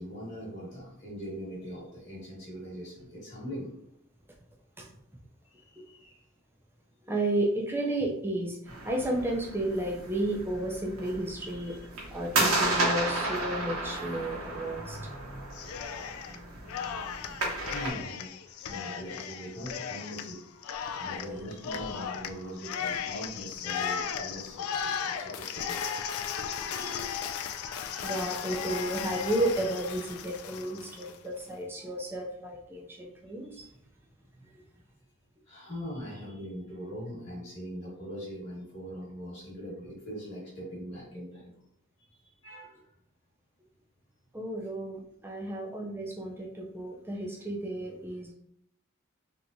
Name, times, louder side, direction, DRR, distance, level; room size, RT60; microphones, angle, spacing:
voice 1, 0.0-3.7 5.5-6.2 11.5-11.8 17.1-20.4 21.0-24.6 24.9-26.3 28.1-28.5 31.8-31.9 33.5-33.7 35.5-41.5 42.4-42.7, equal, 30° left, -7 dB, 1.2 m, -42 dB
voice 2, 7.1-8.6 8.8-11.8 12.1-15.4 16.3-16.4 16.8-17.7 18.7-19.0 26.4-27.1 28.0-33.7 44.3-48.3, right 1 dB, 10° right, 0 dB, 0.4 m, -33 dB
sound 1, 8.7-17.9, right 2 dB, 85° right, 1.0 m, -33 dB
Cheering, 15.5-16.4 16.7-31.2, left 7 dB, 85° left, 0.3 m, -36 dB
3.3 x 2.9 x 2.6 m, 0.69 s
head